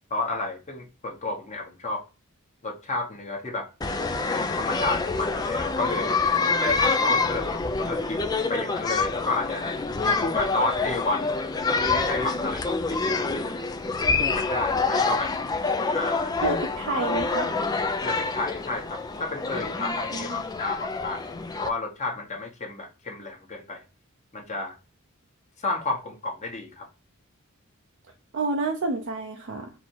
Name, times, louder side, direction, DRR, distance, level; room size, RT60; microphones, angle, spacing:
voice 1, 0.1-2.0 2.6-3.7 4.3-6.2 6.6-9.7 10.0-11.3 11.7-13.7 14.2-15.3 15.9-16.6 18.0-21.2 21.6-23.8 24.3-24.8 25.6-26.9, left 3 dB, 35° left, 1.2 m, -31 dB
sound 1, 3.8-21.7, left 4 dB, 20° left, 0.4 m, -27 dB
voice 2, 16.4-17.5 20.1-20.4 28.3-29.7, right 3 dB, 60° right, 0.7 m, -29 dB
4.2 x 2.8 x 4.5 m
head